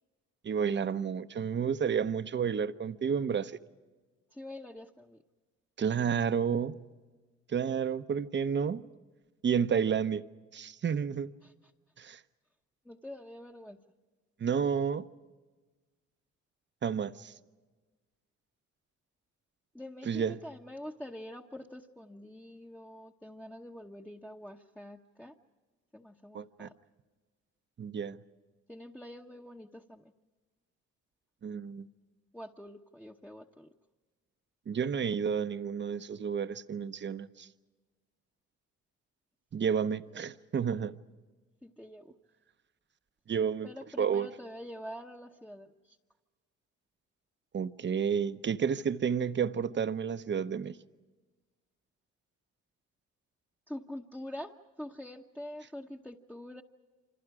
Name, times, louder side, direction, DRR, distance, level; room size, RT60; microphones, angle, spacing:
voice 1, 0.4-3.6 5.8-6.9 7.5-8.9 9.4-10.3 10.5-11.3 12.0-12.2 14.4-15.0 16.8-17.3 20.1-20.4 26.3-26.7 27.8-28.2 31.4-31.9 34.7-37.5 39.5-41.0 43.3-43.7 44.0-44.3 47.5-50.8, right 7 dB, 40° right, 0.9 m, -31 dB
voice 2, 4.3-5.2 11.4-11.5 12.8-13.8 19.7-25.4 25.9-26.7 28.7-30.1 32.3-33.7 41.6-42.1 43.6-46.0 53.7-56.6, left 1 dB, 5° left, 1.0 m, -45 dB
28.5 x 25.5 x 4.9 m
cardioid pair, 90°, 30 cm